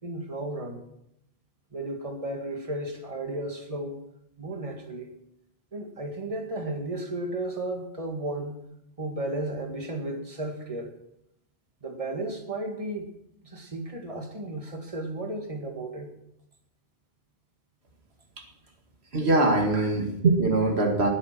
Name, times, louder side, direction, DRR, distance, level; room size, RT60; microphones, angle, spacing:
voice 1, 0.0-0.8 1.7-4.0 4.4-5.1 5.7-8.7 9.0-10.9 11.8-13.1 13.4-16.1 19.8-19.9, right 1 dB, 35° right, 3 dB, 2.1 m, -34 dB
voice 2, 19.1-21.1, right 2 dB, 90° right, 3 dB, 2.3 m, -22 dB
19.5 x 7.4 x 6.1 m, 0.79 s
omnidirectional pair, 1.0 m